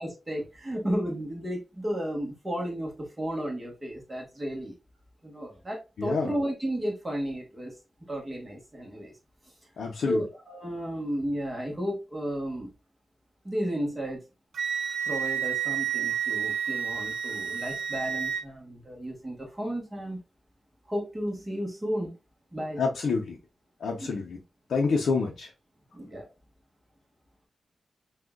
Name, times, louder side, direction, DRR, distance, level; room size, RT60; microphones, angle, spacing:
voice 1, 0.0-4.7 5.2-7.7 8.1-9.1 10.1-12.7 13.4-14.2 15.1-20.2 20.9-22.1 22.5-22.8 24.0-24.2 25.9-26.3, equal, 15° right, 1.2 m, -33 dB
voice 2, 6.0-6.3 9.8-10.2 22.8-23.4 23.8-24.4 24.7-25.5, left 4 dB, 80° left, 0.7 m, -27 dB
Wind instrument woodwind instrument, 14.5-18.4, right 8 dB, 90° right, 0.8 m, -30 dB
6.2 x 2.4 x 2.3 m
wide cardioid pair, 170°, 0 cm